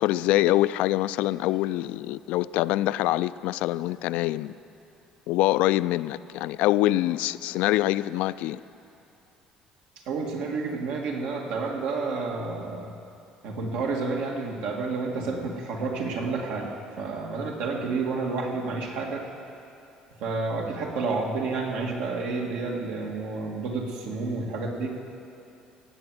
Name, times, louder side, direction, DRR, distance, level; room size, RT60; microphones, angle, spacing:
voice 1, 0.0-4.6 5.3-8.6, left 16 dB, 80° left, 17 dB, 0.3 m, -24 dB
voice 2, 10.1-12.9 13.4-19.3 20.2-24.9, right 3 dB, 80° right, 0 dB, 2.1 m, -30 dB
18.0 x 7.9 x 7.8 m, 2.7 s
cardioid pair, 135°, 2 cm